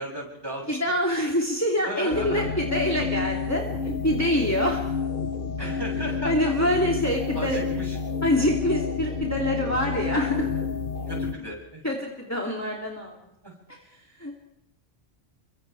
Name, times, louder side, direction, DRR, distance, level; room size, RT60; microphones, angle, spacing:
voice 1, 0.0-0.8 1.8-2.4 5.6-6.5 7.3-8.0 11.1-11.8 13.4-13.5, right 1 dB, 20° right, -2 dB, 8.0 m, -35 dB
voice 2, 0.7-4.8 5.6-5.7 6.2-7.6 8.2-10.5 11.8-13.2 14.2-14.4, left 1 dB, 15° left, -3 dB, 3.1 m, -25 dB
sound 1, 2.1-11.3, left 5 dB, 50° left, 1.5 m, -29 dB
30.0 x 24.5 x 3.6 m, 0.85 s
omnidirectional pair, 1.1 m